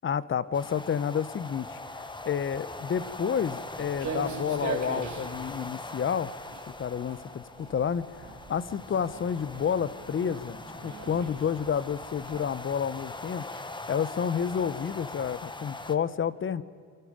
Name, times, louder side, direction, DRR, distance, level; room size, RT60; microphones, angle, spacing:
voice 1, 0.0-1.8 2.3-6.3 6.7-13.5 13.9-16.6, left 7 dB, 40° left, 17 dB, 0.9 m, -30 dB
sound 1, 0.5-16.0, left 2 dB, 15° left, 1.2 m, -41 dB
Walk footsteps, 2.9-12.4, right 4 dB, 70° right, 2.9 m, -41 dB
27.5 x 23.5 x 5.1 m, 2.3 s
cardioid pair, 90°, 30 cm